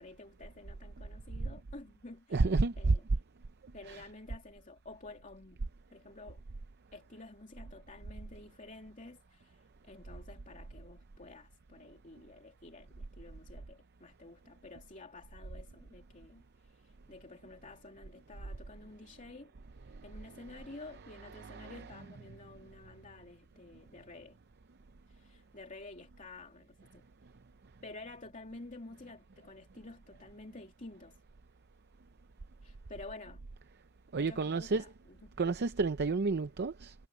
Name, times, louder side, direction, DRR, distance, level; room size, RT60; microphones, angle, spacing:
voice 1, 0.0-2.5 2.8-3.0 3.7-5.6 5.9-6.4 6.9-19.5 20.0-24.4 25.1-27.0 27.8-31.2 32.6-33.4 34.2-35.3, left 2 dB, 35° left, 2.8 m, -51 dB
voice 2, 2.3-2.9 3.9-4.0 21.5-21.7 34.1-34.8 35.4-36.9, right 3 dB, 50° right, 0.6 m, -30 dB
head